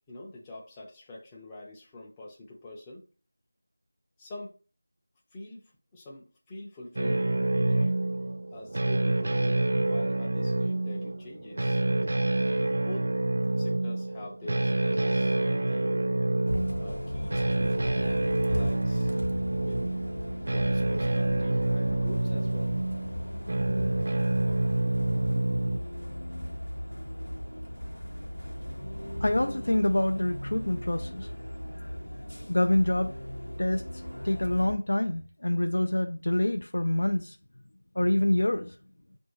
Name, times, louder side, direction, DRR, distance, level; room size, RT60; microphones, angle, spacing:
voice 1, 0.1-3.0 4.2-4.5 5.3-5.6 5.9-7.3 7.5-8.0 8.5-11.8 12.8-13.1 13.6-16.0 16.8-19.2 19.6-19.8 20.4-22.7 27.8-28.0, left 1 dB, 10° left, 0.6 m, -44 dB
sound 1, 7.0-25.8, right 2 dB, 50° right, 0.3 m, -27 dB
Bus, 16.5-34.7, equal, 90° left, 0.7 m, -37 dB
voice 2, 29.2-31.3 32.5-33.1 33.6-37.4 38.0-38.8, left 1 dB, 60° left, 0.3 m, -26 dB
5.7 x 2.6 x 2.8 m
figure-of-eight pair, 170°, 0 cm